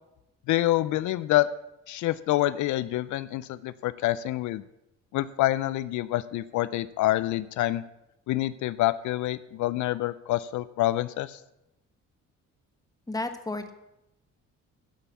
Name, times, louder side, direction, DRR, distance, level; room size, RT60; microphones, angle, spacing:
voice 1, 0.5-1.5 1.9-4.6 5.1-7.8 8.3-11.4, left 15 dB, 75° left, 16 dB, 0.5 m, -27 dB
voice 2, 13.1-13.7, left 2 dB, 10° left, 8 dB, 1.2 m, -32 dB
10.5 x 5.6 x 8.2 m, 0.89 s
cardioid pair, 90°, 30 cm